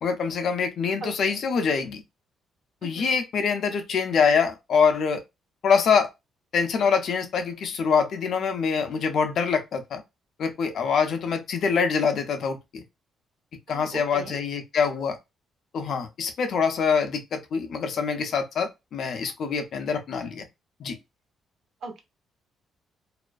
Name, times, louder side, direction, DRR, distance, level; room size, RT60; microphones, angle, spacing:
voice 1, 0.0-2.0 2.8-5.2 5.6-6.1 6.5-10.0 10.4-12.8 13.7-15.2 15.7-20.5 20.8-21.0, left 6 dB, 65° left, 0.6 m, -25 dB
voice 2, 1.0-1.4 2.8-3.1 13.7-14.4 21.8-22.0, right 3 dB, 60° right, 0.8 m, -39 dB
2.4 x 2.1 x 2.4 m
cardioid pair, 90°, 0 cm